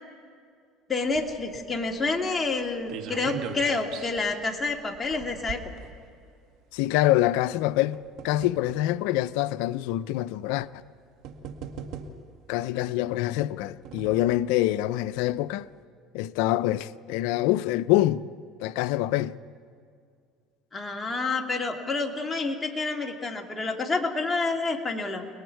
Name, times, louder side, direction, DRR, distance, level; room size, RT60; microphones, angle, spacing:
voice 1, 0.9-5.6 20.7-25.3, left 3 dB, 20° left, 2.2 m, -28 dB
sound 1, 1.1-6.5 7.4-8.9 9.7-9.8 10.8-10.9 11.2-12.4 13.4-14.5 14.9-15.0 15.3-15.4, right 6 dB, 65° right, 1.9 m, -41 dB
voice 2, 6.7-8.0 8.2-10.7 12.5-15.7 16.1-18.2 18.6-19.3, left 15 dB, 80° left, 0.5 m, -25 dB
29.5 x 20.5 x 4.6 m
supercardioid pair, 105°, 0 cm